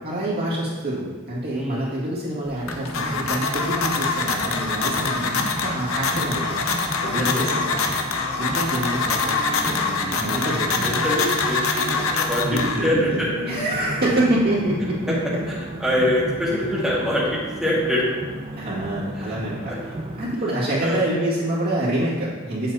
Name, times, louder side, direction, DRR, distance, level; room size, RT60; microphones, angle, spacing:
voice 1, 0.0-7.6 8.2-11.0 12.4-13.2 13.5-15.1 18.6-19.8 20.2-22.7, right 1 dB, 50° right, -7 dB, 1.9 m, -26 dB
voice 2, 1.5-2.1 7.0-7.8 10.3-10.5 10.8-13.3 15.8-18.0 19.2-19.4 20.8-21.1, left 1 dB, ahead, -7 dB, 1.7 m, -25 dB
sound 1, 2.5-13.1, left 4 dB, 85° left, 0.7 m, -25 dB
sound 2, 2.7-20.4, right 1 dB, 30° right, 0.6 m, -34 dB
8.0 x 7.5 x 2.8 m, 1.3 s
head